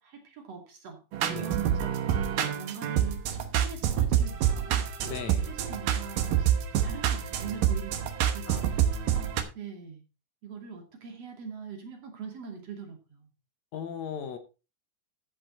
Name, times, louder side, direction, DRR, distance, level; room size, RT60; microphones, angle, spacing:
voice 1, 0.0-1.9 2.3-4.9 5.5-6.5 6.8-8.7 9.1-10.0 10.4-13.3, right 6 dB, 50° right, 3.4 m, -42 dB
sound 1, 1.1-9.4, right 10 dB, 85° right, 2.8 m, -27 dB
voice 2, 5.0-5.5 8.5-9.5 13.7-14.4, left 7 dB, 65° left, 2.1 m, -39 dB
15.0 x 5.3 x 4.2 m
omnidirectional pair, 3.7 m